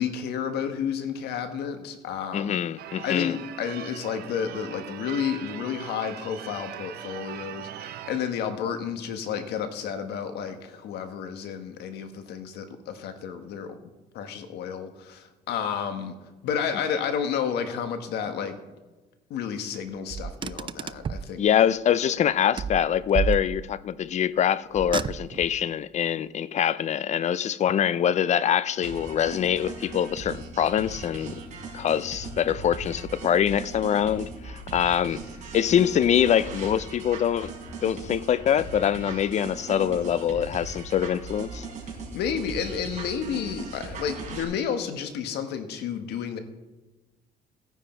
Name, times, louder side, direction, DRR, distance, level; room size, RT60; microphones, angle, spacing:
voice 1, 0.0-2.6 3.0-16.1 16.4-18.6 19.3-21.4 42.1-46.4, left 7 dB, 75° left, 1.5 m, -31 dB
voice 2, 2.3-3.4 21.4-31.4 31.7-35.2 35.5-37.5 37.8-41.7, left 9 dB, 45° left, 0.5 m, -24 dB
Church bell / Car / Alarm, 2.8-8.3, right 11 dB, 70° right, 0.9 m, -40 dB
Car, 20.1-21.3 22.6-23.9 24.7-25.6, right 6 dB, 30° right, 0.4 m, -31 dB
sound 1, 28.8-44.4, right 4 dB, 45° right, 4.6 m, -39 dB
16.0 x 10.0 x 4.5 m
cardioid pair, 110°, 17 cm